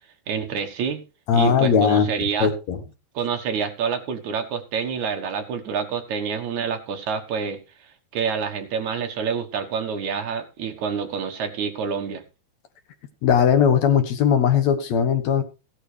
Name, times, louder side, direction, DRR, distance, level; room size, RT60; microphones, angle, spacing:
voice 1, 0.3-1.0 1.3-2.5 3.1-7.6 8.1-12.2, right 6 dB, 60° right, 5 dB, 2.3 m, -27 dB
voice 2, 1.3-2.1 2.4-2.8 13.2-15.4, left 7 dB, 60° left, 8 dB, 2.0 m, -19 dB
15.5 x 11.5 x 3.4 m, 0.30 s
omnidirectional pair, 4.7 m